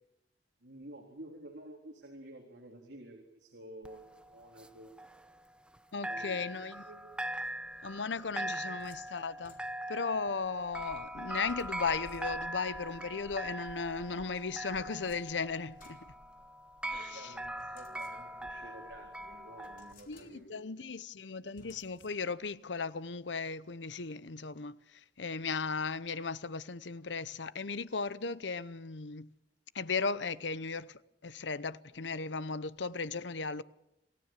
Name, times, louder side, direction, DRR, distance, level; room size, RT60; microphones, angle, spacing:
voice 1, 0.6-5.1 5.9-7.2 8.3-8.6 16.9-20.6, right 1 dB, 80° right, 3.8 m, -51 dB
sound 1, 3.8-5.8 6.0-19.9, right 1 dB, 5° right, 1.0 m, -41 dB
voice 2, 5.9-6.8 7.8-9.6 9.9-16.0 16.9-17.3 20.1-29.3 29.7-33.6, left 4 dB, 90° left, 0.9 m, -36 dB
sound 2, 8.1-10.1 11.5-12.7 14.3-16.8 17.6-18.6 19.0-19.1 19.6-20.7 21.5-22.6, left 4 dB, 50° left, 4.2 m, -63 dB
27.5 x 16.5 x 7.5 m
head